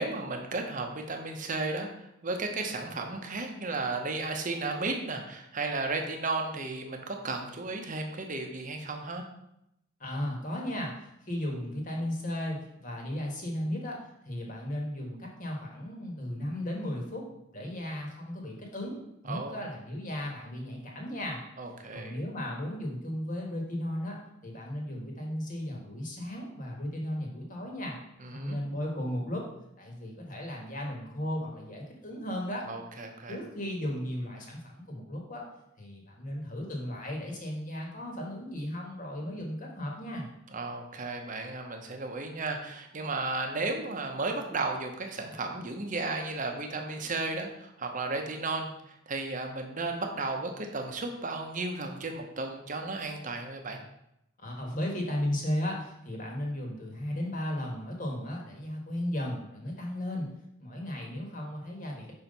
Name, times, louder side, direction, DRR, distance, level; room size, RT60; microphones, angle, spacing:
voice 1, 0.0-9.2 19.2-19.6 21.6-22.2 28.2-28.6 32.7-33.4 40.5-53.8, right 3 dB, 40° right, 3 dB, 0.9 m, -34 dB
voice 2, 10.0-10.9 11.2-17.3 17.5-19.0 19.2-21.4 21.9-28.0 28.3-29.4 29.8-32.7 33.3-35.5 35.8-40.3 54.4-60.3 60.6-62.1, left 1 dB, 40° left, 0 dB, 1.5 m, -35 dB
5.6 x 4.5 x 5.3 m, 0.81 s
head